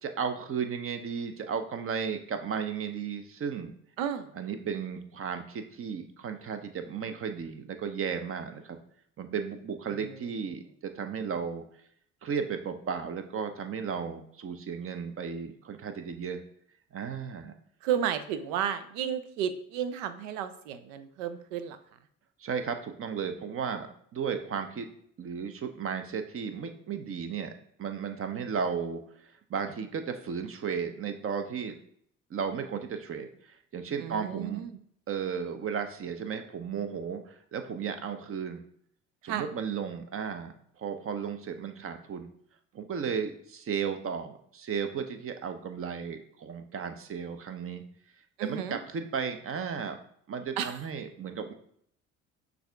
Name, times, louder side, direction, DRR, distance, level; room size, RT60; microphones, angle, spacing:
voice 1, 0.0-3.7 4.3-8.8 9.2-11.6 12.2-16.4 16.9-17.5 22.4-24.9 25.2-27.5 27.8-31.7 32.3-34.6 35.1-38.6 39.2-42.3 42.7-47.8 48.4-50.0 50.3-51.5, right 6 dB, 35° right, 7 dB, 0.7 m, -34 dB
voice 2, 4.0-4.3 9.9-10.2 17.8-21.8 34.0-34.8 39.2-39.5 48.4-48.8 50.6-50.8, right 9 dB, 75° right, 12 dB, 0.5 m, -32 dB
5.9 x 2.6 x 3.3 m, 0.66 s
hypercardioid pair, 60°, 37 cm